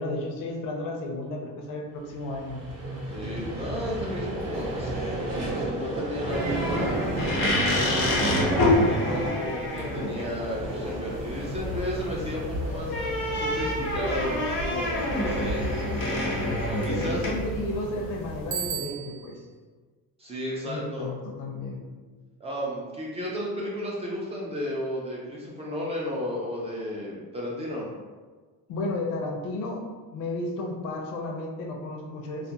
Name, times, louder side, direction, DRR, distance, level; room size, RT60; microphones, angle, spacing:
voice 1, 0.0-2.6 16.9-19.4 20.6-21.8 28.7-29.8 30.1-32.5, left 2 dB, 65° left, 1 dB, 0.5 m, -33 dB
Vehicle, 2.0-18.4, right 1 dB, 45° right, 0.7 m, -34 dB
voice 2, 3.1-7.1 7.9-15.7 16.7-17.2 20.2-21.1 22.4-27.9, equal, 20° right, -4 dB, 0.3 m, -33 dB
sound 1, 6.3-18.7, left 1 dB, 90° left, 0.9 m, -28 dB
Bicycle bell, 18.5-19.5, right 8 dB, 85° right, 0.5 m, -34 dB
2.4 x 2.1 x 2.7 m, 1.4 s
cardioid pair, 145°, 34 cm